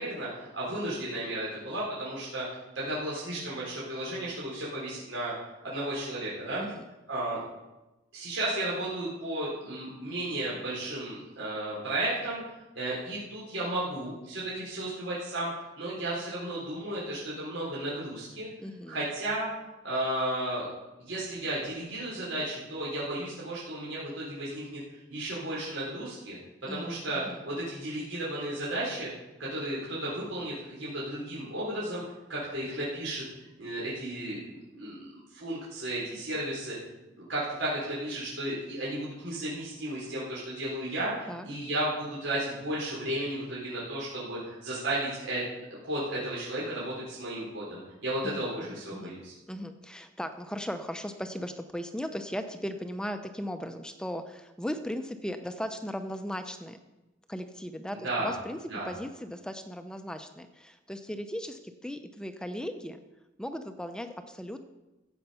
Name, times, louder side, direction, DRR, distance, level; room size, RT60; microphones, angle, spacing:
voice 1, 0.0-2.5 2.7-5.3 5.6-6.6 7.1-7.4 8.1-12.4 12.7-15.5 15.8-18.5 18.9-19.5 19.8-20.7 21.0-26.4 26.7-29.1 29.4-32.0 32.3-33.2 33.6-36.8 37.1-45.4 45.8-49.3 58.0-58.3 58.7-58.9, right 1 dB, 85° right, -7 dB, 4.1 m, -34 dB
voice 2, 18.6-19.0 26.7-27.4 41.3-41.5 48.2-49.2 49.5-56.8 57.3-58.6 58.8-63.0 63.4-64.6, equal, 5° left, 8 dB, 0.6 m, -37 dB
14.5 x 8.1 x 5.7 m, 1.0 s
head